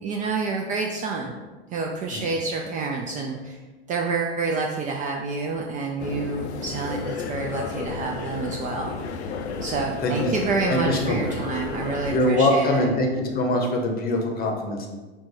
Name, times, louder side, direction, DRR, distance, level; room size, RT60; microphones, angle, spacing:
voice 1, 0.0-1.3 1.7-3.6 3.9-8.9 9.6-12.9, right 4 dB, 25° right, 0 dB, 0.3 m, -28 dB
sound 1, 6.0-12.2, left 5 dB, 80° left, 0.5 m, -32 dB
voice 2, 10.0-10.3 10.7-11.3 12.1-14.9, left 1 dB, 30° left, 2 dB, 0.8 m, -23 dB
4.5 x 2.2 x 4.0 m, 1.3 s
hypercardioid pair, 90°, 33 cm